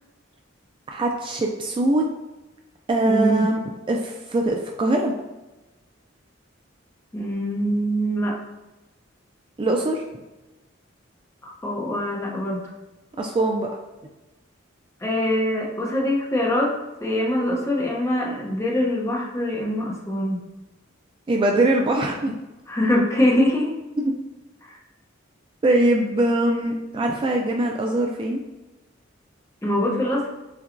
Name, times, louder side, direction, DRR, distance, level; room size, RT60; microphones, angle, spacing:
voice 1, 0.9-2.0 2.9-3.6 3.9-5.1 9.6-10.0 13.2-13.7 21.3-22.3 24.0-24.1 25.6-28.4, right 1 dB, 25° right, 2 dB, 0.3 m, -22 dB
voice 2, 3.0-3.5 7.1-8.4 11.4-12.6 15.0-16.7 17.0-20.4 22.7-23.8 24.6-24.8 29.6-30.3, left 1 dB, 15° left, -2 dB, 0.7 m, -23 dB
5.7 x 2.2 x 2.5 m, 1.1 s
head